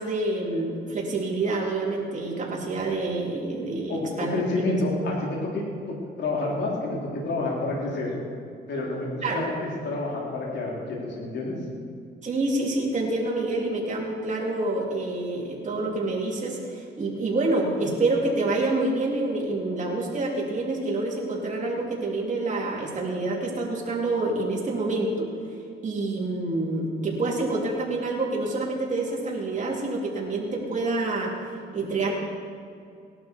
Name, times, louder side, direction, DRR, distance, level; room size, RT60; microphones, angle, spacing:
voice 1, 0.0-4.4 9.2-9.5 12.2-25.3 25.8-31.3 31.7-32.1, right 2 dB, 40° right, -2 dB, 3.7 m, -27 dB
voice 2, 4.3-5.6 6.2-7.0 7.2-8.2 8.7-11.6, left 2 dB, 65° left, -3 dB, 3.8 m, -29 dB
18.0 x 12.0 x 4.7 m, 2.3 s
cardioid pair, 90°, 20 cm